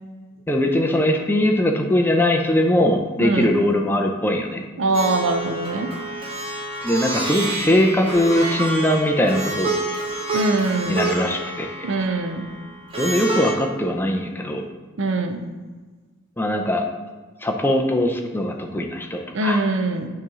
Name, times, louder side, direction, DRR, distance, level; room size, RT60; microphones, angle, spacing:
voice 1, 0.5-4.6 6.8-9.8 10.9-11.9 13.0-14.7 16.4-16.9 17.4-19.7, left 1 dB, 10° left, 3 dB, 0.4 m, -21 dB
voice 2, 3.2-3.5 4.8-5.9 10.3-11.0 11.8-12.5 15.0-15.4 19.3-20.1, right 2 dB, 60° right, 5 dB, 0.5 m, -22 dB
Plucked string instrument, 4.9-13.5, right 2 dB, 25° right, 0.9 m, -28 dB
8.3 x 3.1 x 3.6 m, 1.4 s
head